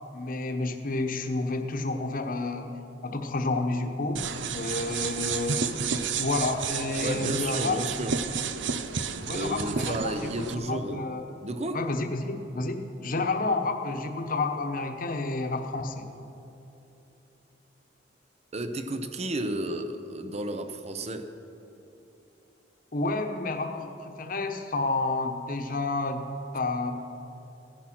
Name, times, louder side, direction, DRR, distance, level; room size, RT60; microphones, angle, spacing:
voice 1, 0.1-2.8 3.0-4.2 4.5-5.9 6.2-7.8 9.3-11.3 11.7-16.1 22.9-26.9, left 3 dB, 50° left, 5 dB, 1.1 m, -30 dB
sound 1, 4.1-10.5, right 6 dB, 90° right, 0.7 m, -31 dB
voice 2, 7.0-8.2 9.3-11.1 11.4-11.8 18.5-21.3, right 1 dB, 35° right, 8 dB, 0.8 m, -32 dB
16.5 x 10.0 x 6.0 m, 2.9 s
head